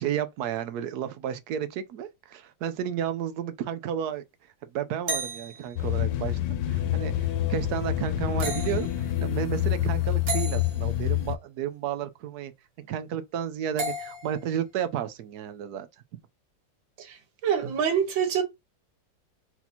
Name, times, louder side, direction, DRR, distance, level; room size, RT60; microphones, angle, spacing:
voice 1, 0.0-4.2 4.7-6.4 6.7-12.5 12.8-15.9, right 9 dB, 70° right, 1.0 m, -32 dB
sound 1, 5.1-5.8 8.4-9.0 10.3-10.8 13.8-14.4, right 2 dB, 50° right, 1.7 m, -33 dB
sound 2, 5.8-11.3, left 13 dB, 80° left, 1.3 m, -27 dB
voice 2, 17.0-18.4, right 8 dB, 85° right, 1.9 m, -26 dB
4.3 x 2.8 x 4.1 m
omnidirectional pair, 2.0 m